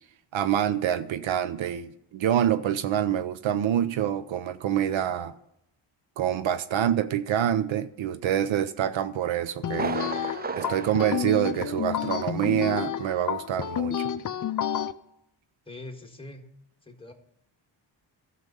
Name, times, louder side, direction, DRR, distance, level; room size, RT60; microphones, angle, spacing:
voice 1, 0.3-5.3 6.2-10.0 10.5-14.1, right 10 dB, 70° right, 13 dB, 0.7 m, -26 dB
sound 1, 9.6-14.9, left 9 dB, 40° left, 0.6 m, -30 dB
Thunder, 9.7-12.3 12.6-12.7 13.2-13.3, right 5 dB, 20° right, 0.4 m, -35 dB
voice 2, 15.7-16.4 16.8-17.1, left 2 dB, 10° left, 3 dB, 1.7 m, -42 dB
12.5 x 6.9 x 5.4 m, 0.80 s
cardioid pair, 75°, 48 cm